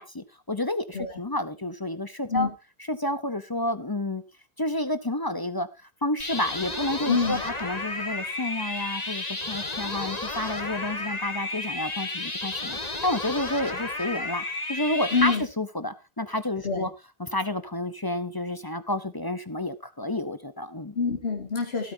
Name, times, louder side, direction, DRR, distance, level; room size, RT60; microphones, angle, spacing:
voice 1, 0.0-2.5 2.9-4.2 4.6-5.7 6.0-16.9 17.2-21.0, left 1 dB, 25° left, 12 dB, 0.8 m, -30 dB
sound 1, 6.2-15.3, left 2 dB, 40° left, 2.0 m, -32 dB
voice 2, 7.1-7.4 15.1-15.4 16.6-16.9 21.0-21.9, left 4 dB, 75° left, 2 dB, 2.3 m, -26 dB
16.5 x 9.0 x 2.7 m, 0.27 s
omnidirectional pair, 1.1 m